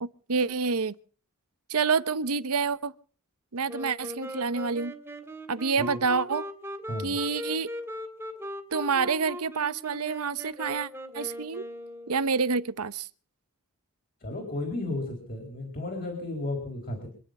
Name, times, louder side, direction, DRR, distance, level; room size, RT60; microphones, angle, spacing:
voice 1, 0.0-1.0 1.7-2.9 3.5-4.9 5.5-6.5 7.0-7.7 8.7-10.9 11.1-11.6 12.1-13.1, right 5 dB, 75° right, 0.9 m, -28 dB
Wind instrument woodwind instrument, 3.7-12.4, equal, 10° right, 2.4 m, -39 dB
voice 2, 14.2-17.1, left 2 dB, 40° left, 4.6 m, -33 dB
26.0 x 10.0 x 5.5 m
head